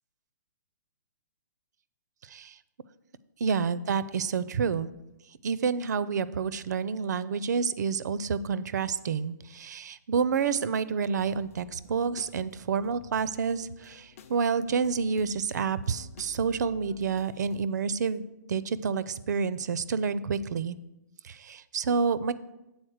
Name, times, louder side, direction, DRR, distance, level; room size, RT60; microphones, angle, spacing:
voice 1, 2.2-2.6 3.4-4.9 5.4-18.2 18.5-20.8 21.2-22.3, right 6 dB, 65° right, 16 dB, 0.4 m, -29 dB
sound 1, 11.2-17.7, left 5 dB, 50° left, 0.5 m, -53 dB
7.9 x 4.0 x 6.4 m, 0.95 s
hypercardioid pair, 165°, 10 cm